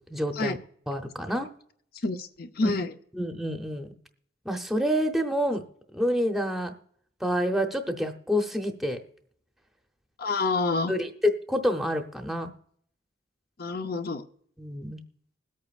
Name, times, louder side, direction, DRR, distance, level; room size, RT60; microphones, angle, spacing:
voice 1, 0.1-0.6 0.9-1.5 2.6-2.8 3.1-3.9 4.4-5.6 5.9-6.7 7.2-9.0 10.9-12.5 14.6-15.0, equal, ahead, 5 dB, 0.8 m, -28 dB
voice 2, 2.0-2.9 10.2-10.9 13.6-14.2, left 3 dB, 50° left, 8 dB, 0.7 m, -28 dB
21.0 x 8.5 x 2.5 m, 0.63 s
head